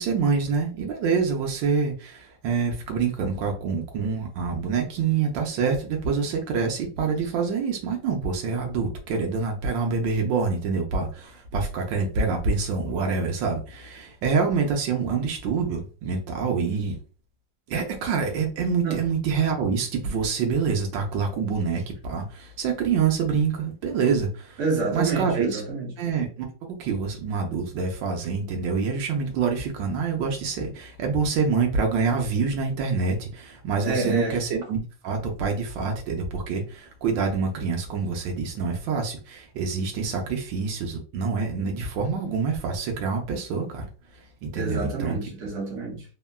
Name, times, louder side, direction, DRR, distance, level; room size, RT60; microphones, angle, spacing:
voice 1, 0.0-17.0 17.7-24.6 24.9-25.6 26.0-43.9 44.4-45.2, right 5 dB, 80° right, 1.3 m, -26 dB
voice 2, 24.6-25.9 33.8-34.4 44.5-46.0, right 3 dB, 40° right, 1.1 m, -28 dB
3.6 x 2.2 x 2.2 m
omnidirectional pair, 2.0 m